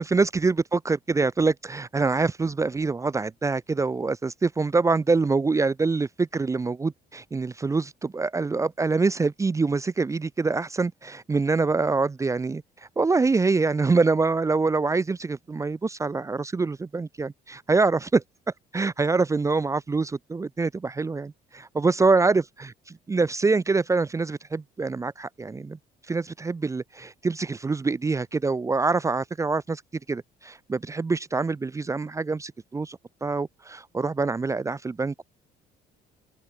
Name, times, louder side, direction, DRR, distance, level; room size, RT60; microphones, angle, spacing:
voice 1, 0.0-12.6 13.0-18.2 18.7-22.7 23.1-25.8 26.1-29.8 30.1-35.2, right 3 dB, 20° right, 0.6 m, -25 dB
cardioid pair, 110°, 17 cm